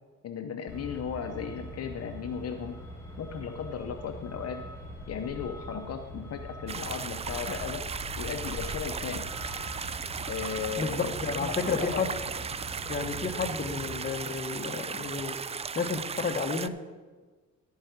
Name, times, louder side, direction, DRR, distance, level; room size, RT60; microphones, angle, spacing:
voice 1, 0.2-2.8 3.2-4.6 5.1-7.9 8.2-9.3 10.3-12.1, left 7 dB, 55° left, 5 dB, 0.8 m, -36 dB
Truck, 0.7-14.0, equal, 10° left, 2.4 m, -42 dB
sound 1, 6.7-16.7, right 6 dB, 20° right, 0.3 m, -36 dB
voice 2, 10.8-12.1 12.9-15.4 15.7-16.7, left 4 dB, 30° left, 5 dB, 1.1 m, -31 dB
12.0 x 4.8 x 8.0 m, 1.4 s
cardioid pair, 90°, 30 cm